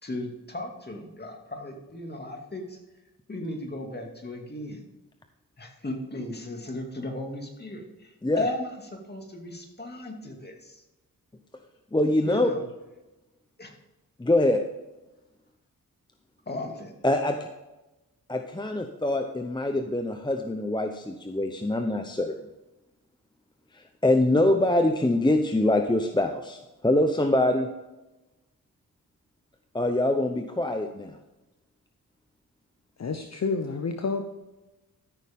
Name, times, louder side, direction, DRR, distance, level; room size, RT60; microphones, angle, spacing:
voice 1, 0.0-2.8 3.3-4.8 5.6-10.8 12.2-12.6 13.6-13.7 16.5-16.9, left 1 dB, 30° left, 2.4 m, -36 dB
voice 2, 11.9-12.5 14.2-14.6 17.0-17.4 18.3-22.3 23.7-27.7 29.7-31.2, left 1 dB, 15° left, 0.8 m, -24 dB
voice 3, 33.0-34.2, left 4 dB, 50° left, 0.9 m, -29 dB
13.5 x 6.5 x 3.7 m
cardioid pair, 75°, 35 cm